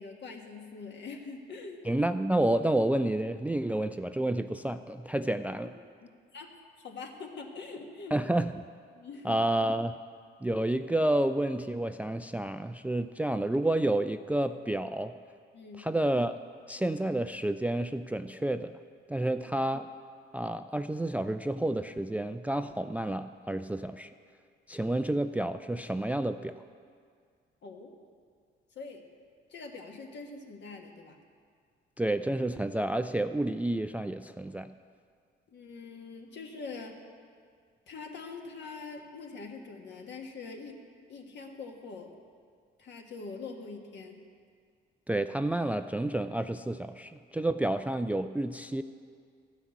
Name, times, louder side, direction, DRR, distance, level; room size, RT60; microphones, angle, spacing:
voice 1, 0.0-1.8 6.0-6.5 6.8-8.2 8.9-9.4 15.5-15.9 19.1-19.3 27.6-27.9 28.7-29.0 29.5-31.2 35.5-37.0 37.9-40.8 41.1-42.1 42.8-44.2, left 4 dB, 65° left, 2 dB, 1.5 m, -43 dB
voice 2, 1.9-5.7 8.1-8.5 9.2-9.9 10.4-15.1 15.8-16.4 16.7-18.7 19.1-19.9 20.3-24.1 24.7-26.5 32.0-34.7 45.1-48.8, right 1 dB, 5° right, 10 dB, 0.3 m, -30 dB
13.0 x 5.8 x 8.3 m, 2.1 s
cardioid pair, 90°, 20 cm